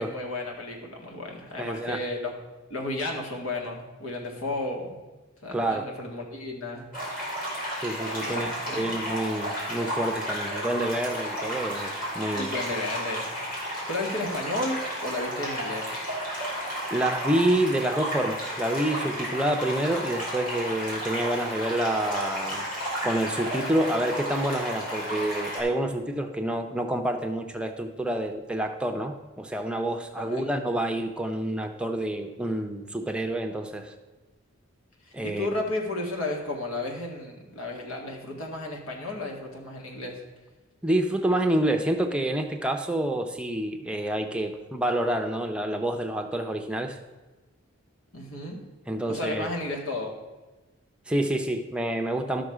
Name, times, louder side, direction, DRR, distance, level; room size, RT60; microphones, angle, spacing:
voice 1, 0.0-2.3 2.7-5.0 5.4-6.9 8.2-8.9 12.3-13.3 13.9-15.9 30.2-30.4 35.1-40.2 48.1-48.6 49.1-50.1, left 2 dB, 85° left, 0 dB, 1.9 m, -33 dB
voice 2, 1.6-2.0 5.5-5.9 7.8-12.5 16.9-22.6 23.0-33.9 35.1-35.5 40.8-47.0 48.9-49.5 51.1-52.4, right 1 dB, 5° right, 4 dB, 0.6 m, -28 dB
sound 1, 6.9-25.6, equal, 40° left, 3.8 m, -32 dB
12.0 x 6.3 x 4.9 m, 1.2 s
head